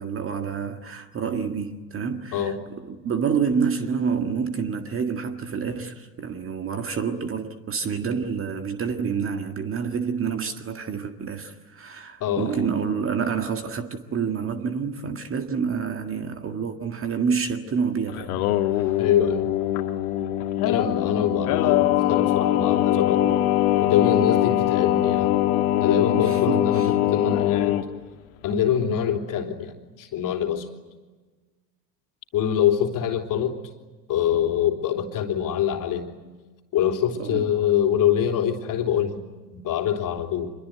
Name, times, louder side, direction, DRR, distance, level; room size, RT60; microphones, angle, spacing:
voice 1, 0.0-2.5 2.8-18.4 18.7-18.9 26.1-26.9 37.2-37.5, right 6 dB, 25° right, 1.9 m, -28 dB
voice 2, 12.2-12.7 19.0-19.5 20.6-23.3 23.8-25.4 25.8-27.8 28.4-30.7 32.3-33.6 34.1-36.1 36.7-39.2 39.5-40.5, left 9 dB, 40° left, 3.4 m, -24 dB
Singing, 18.1-27.8, left 13 dB, 60° left, 2.2 m, -22 dB
26.5 x 22.5 x 9.4 m
figure-of-eight pair, 85°, 50 cm